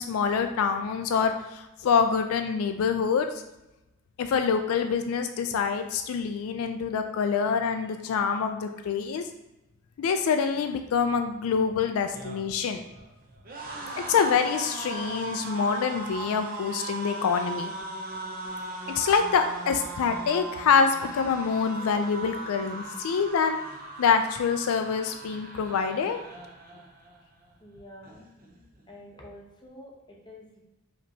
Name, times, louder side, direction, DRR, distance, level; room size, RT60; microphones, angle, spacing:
voice 1, 0.0-3.3 4.2-9.2 10.0-12.8 14.1-17.7 18.9-23.6 24.0-26.2, left 6 dB, 80° left, 6 dB, 0.3 m, -26 dB
sound 1, 12.0-27.2 27.5-27.8 28.0-28.8, right 3 dB, 45° right, 0.6 m, -38 dB
voice 2, 27.6-28.2 28.9-30.6, left 1 dB, 20° left, -1 dB, 0.8 m, -48 dB
5.2 x 2.9 x 2.7 m, 0.95 s
head